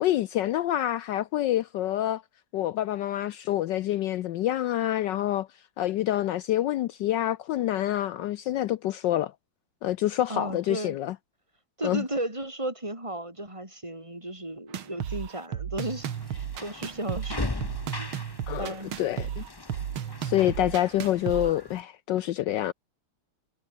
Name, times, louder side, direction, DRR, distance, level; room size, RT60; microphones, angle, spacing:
voice 1, 0.0-2.2 2.5-5.5 5.8-9.3 9.8-11.1 11.8-12.0 18.5-19.4 20.2-22.7, left 13 dB, 70° left, 1.2 m, -27 dB
voice 2, 10.3-11.0 11.8-17.6 18.0-18.1 18.6-18.9, right 1 dB, 15° right, 6.7 m, -34 dB
sound 1, 14.7-21.5, right 9 dB, 90° right, 2.3 m, -34 dB
sound 2, 15.8-21.8, left 2 dB, 15° left, 1.2 m, -39 dB
omnidirectional pair, 2.2 m